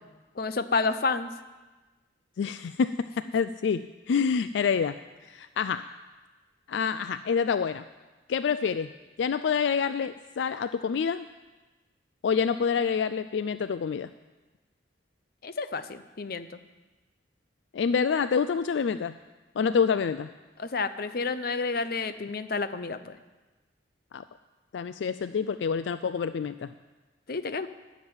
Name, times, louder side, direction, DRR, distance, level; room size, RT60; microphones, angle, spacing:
voice 1, 0.3-1.3 15.4-16.6 20.6-23.2 27.3-27.7, left 4 dB, 55° left, 11 dB, 0.7 m, -30 dB
voice 2, 2.4-5.0 5.2-5.9 6.7-7.8 8.3-8.9 9.2-11.2 12.2-14.1 17.7-19.1 19.6-20.3 24.1-24.2 24.7-26.7, left 6 dB, 75° left, 13 dB, 0.4 m, -27 dB
12.5 x 7.4 x 9.5 m, 1.2 s
head